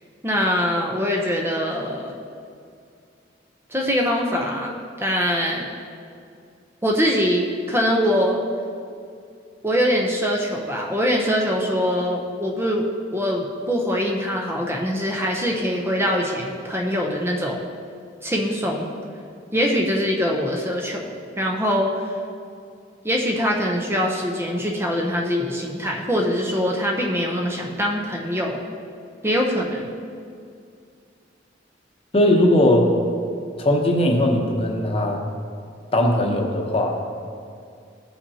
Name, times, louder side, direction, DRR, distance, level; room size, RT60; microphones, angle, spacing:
voice 1, 0.2-2.2 3.7-5.7 6.8-8.4 9.6-17.6 18.2-18.9 19.5-22.1 23.0-28.6 29.2-30.0, equal, 15° right, 0 dB, 0.7 m, -23 dB
voice 2, 32.1-32.9 33.6-35.2 35.9-37.0, left 1 dB, 30° left, 1 dB, 0.9 m, -19 dB
15.5 x 5.7 x 2.8 m, 2.3 s
head